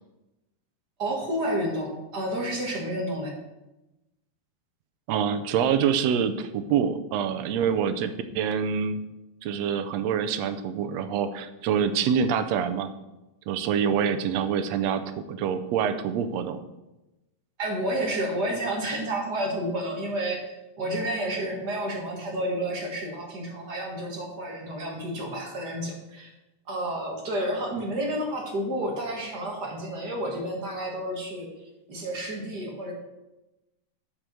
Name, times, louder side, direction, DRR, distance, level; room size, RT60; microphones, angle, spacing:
voice 1, 1.0-3.3 17.6-26.3 26.7-31.5 31.9-32.9, right 1 dB, 35° right, 0 dB, 1.9 m, -30 dB
voice 2, 5.1-9.0 9.4-12.9 13.5-16.6, right 7 dB, 80° right, 9 dB, 1.5 m, -26 dB
9.4 x 5.1 x 7.6 m, 0.98 s
omnidirectional pair, 3.7 m